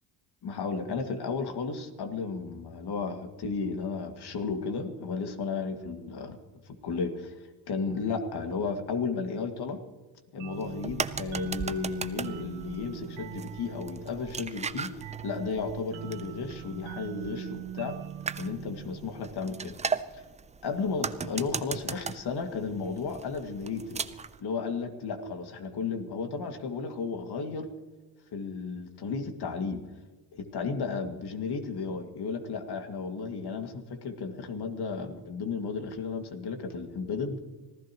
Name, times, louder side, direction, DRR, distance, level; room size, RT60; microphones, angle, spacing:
voice 1, 0.4-6.4 6.7-7.3 7.7-9.8 10.3-14.9 15.2-18.0 18.4-19.8 20.1-20.2 20.6-24.0 24.4-27.7 28.3-29.8 30.3-37.4, left 4 dB, 50° left, 5 dB, 2.2 m, -33 dB
sound 1, 10.4-19.8, right 11 dB, 65° right, 0.9 m, -42 dB
sound 2, 10.5-24.4, right 5 dB, 15° right, 0.4 m, -38 dB
25.0 x 16.0 x 3.0 m, 1.2 s
cardioid pair, 100°, 49 cm